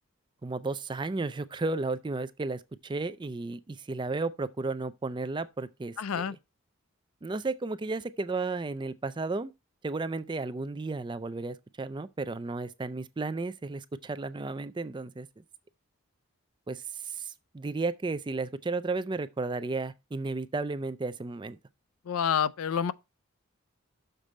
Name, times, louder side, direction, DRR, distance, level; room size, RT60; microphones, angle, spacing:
voice 1, 0.4-6.4 7.2-9.5 9.8-15.3 16.7-21.6, right 3 dB, 20° right, 0.3 m, -33 dB
voice 2, 6.0-6.4 22.1-22.9, left 7 dB, 75° left, 0.4 m, -28 dB
6.7 x 4.2 x 6.2 m
head